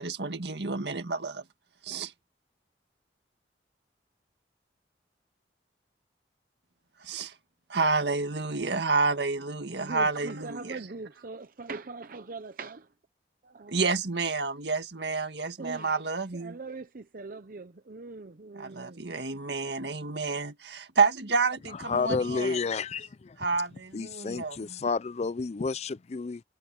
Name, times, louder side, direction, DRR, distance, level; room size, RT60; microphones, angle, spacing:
voice 1, 0.0-1.4 1.8-2.1 7.0-7.3 7.7-10.8 13.7-16.6 18.5-22.6 23.4-24.8, right 4 dB, 75° right, 1.8 m, -29 dB
voice 2, 9.8-12.9 13.4-13.7 15.6-16.0 16.3-19.0, right 3 dB, 55° right, 0.7 m, -41 dB
voice 3, 21.9-23.4 23.9-26.4, left 4 dB, 40° left, 0.4 m, -30 dB
head